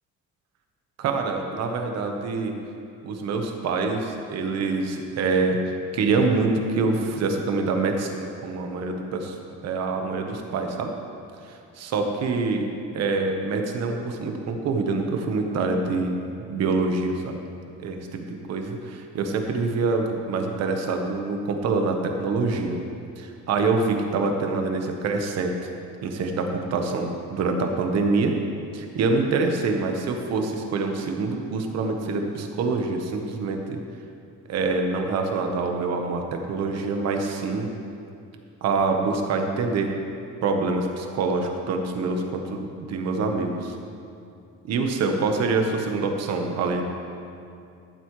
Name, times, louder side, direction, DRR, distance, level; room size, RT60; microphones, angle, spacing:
voice 1, 1.0-2.5 3.0-9.3 9.6-10.9 11.5-12.6 12.9-17.4 17.8-22.8 23.2-25.5 26.0-28.3 28.7-33.8 34.5-37.7 38.6-39.9 40.4-43.7 44.7-46.8, right 3 dB, 60° right, 3 dB, 1.2 m, -25 dB
14.0 x 11.5 x 3.2 m, 2.5 s
cardioid pair, 160°, 30 cm